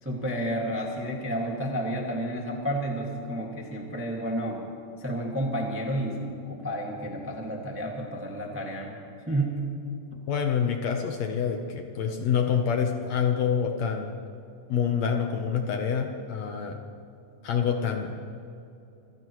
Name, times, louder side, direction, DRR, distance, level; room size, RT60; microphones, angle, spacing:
voice 1, 0.0-4.6 5.0-9.0 9.3-9.6, right 1 dB, 10° right, -1 dB, 0.8 m, -31 dB
voice 2, 10.3-14.2 14.7-16.8 17.4-18.2, left 7 dB, 65° left, 3 dB, 1.9 m, -27 dB
26.0 x 16.0 x 3.1 m, 2.6 s
omnidirectional pair, 3.8 m